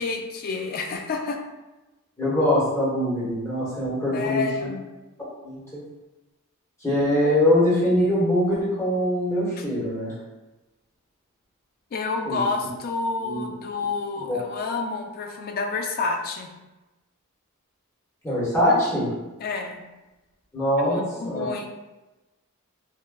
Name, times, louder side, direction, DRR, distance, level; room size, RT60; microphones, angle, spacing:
voice 1, 0.0-1.4 4.1-4.8 11.9-16.5 19.4-19.8 20.8-21.8, left 4 dB, 45° left, 4 dB, 0.3 m, -29 dB
voice 2, 2.2-4.7 5.4-5.8 6.8-10.1 12.3-12.4 13.2-13.5 14.3-14.4 18.2-19.1 20.5-21.5, left 1 dB, 15° left, -8 dB, 1.0 m, -23 dB
3.4 x 2.1 x 2.3 m, 1.1 s
head